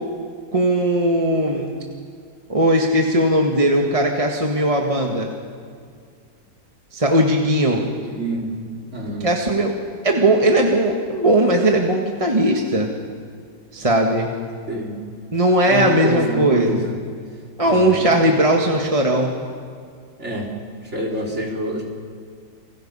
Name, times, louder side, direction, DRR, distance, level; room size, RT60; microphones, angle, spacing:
voice 1, 0.5-1.8 2.5-5.3 6.9-7.8 9.2-9.7 10.0-12.9 13.7-14.3 15.3-16.8 17.6-19.3, right 1 dB, 20° right, 1 dB, 1.7 m, -18 dB
voice 2, 8.0-8.5 8.9-9.3 14.7-15.0 15.6-17.0 17.6-18.1 20.2-20.5 20.9-21.8, equal, 40° right, -2 dB, 4.2 m, -26 dB
30.0 x 24.5 x 5.6 m, 2.2 s
omnidirectional pair, 1.7 m